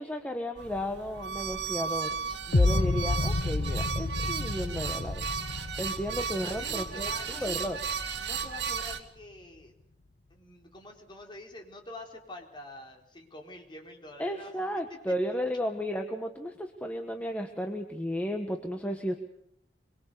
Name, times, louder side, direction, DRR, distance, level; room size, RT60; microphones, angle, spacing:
voice 1, 0.0-2.2 2.5-5.2 5.8-7.8 14.2-19.2, equal, 10° left, 4 dB, 1.5 m, -33 dB
sound 1, 0.5-9.0, right 6 dB, 80° right, 2.3 m, -35 dB
sound 2, 2.5-8.5, left 2 dB, 85° left, 1.0 m, -30 dB
voice 2, 6.4-7.6 8.2-9.7 10.3-14.5, left 2 dB, 25° left, 2 dB, 4.2 m, -46 dB
25.0 x 23.0 x 7.0 m, 0.74 s
head